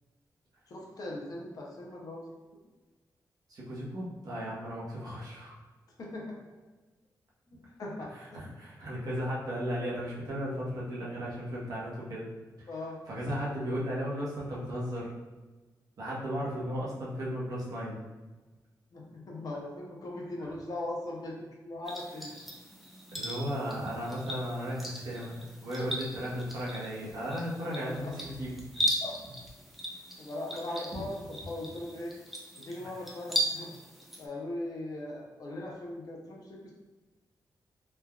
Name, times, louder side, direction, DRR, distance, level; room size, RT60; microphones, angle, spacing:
voice 1, 0.7-2.2 6.0-6.4 7.8-8.1 12.7-13.0 18.9-21.4 21.6-22.3 27.8-28.1 29.0-29.2 30.2-32.1 32.6-33.7 34.2-36.7, left 1 dB, 55° left, -2 dB, 0.6 m, -39 dB
voice 2, 3.5-5.5 8.3-12.3 12.6-12.7 13.1-15.1 16.0-18.0 20.4-20.5 23.1-28.5 28.7-28.9 30.9-31.0, equal, 55° right, -6 dB, 0.8 m, -35 dB
sound 1, 21.9-34.3, right 1 dB, ahead, 0.4 m, -38 dB
3.2 x 2.3 x 2.2 m, 1.2 s
wide cardioid pair, 165°, 8 cm